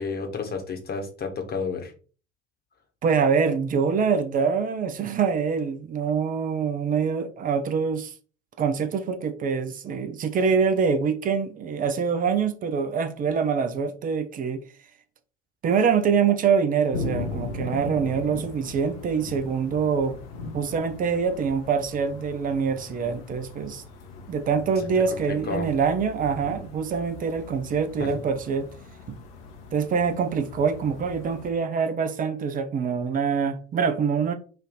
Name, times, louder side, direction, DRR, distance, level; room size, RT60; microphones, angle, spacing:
voice 1, 0.0-1.9 25.1-25.7 28.0-28.1, left 5 dB, 25° left, 1.1 m, -31 dB
voice 2, 3.0-8.1 8.6-14.6 15.6-20.2 20.5-23.8 24.3-28.7 29.7-34.3, right 6 dB, 25° right, 0.6 m, -25 dB
sound 1, 16.9-31.5, left 4 dB, 55° left, 0.8 m, -39 dB
3.2 x 2.6 x 4.0 m
figure-of-eight pair, 65°, 35 cm